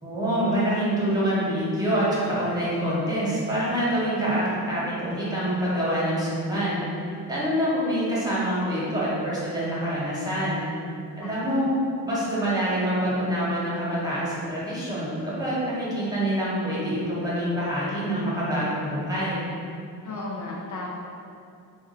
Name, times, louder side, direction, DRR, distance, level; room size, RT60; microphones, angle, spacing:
voice 1, 0.0-10.6 11.2-11.7 12.0-19.4, equal, 10° right, -9 dB, 1.3 m, -26 dB
voice 2, 11.2-11.5 20.0-20.9, left 2 dB, 55° left, -3 dB, 0.5 m, -35 dB
3.7 x 2.3 x 2.6 m, 2.5 s
cardioid pair, 55°, 38 cm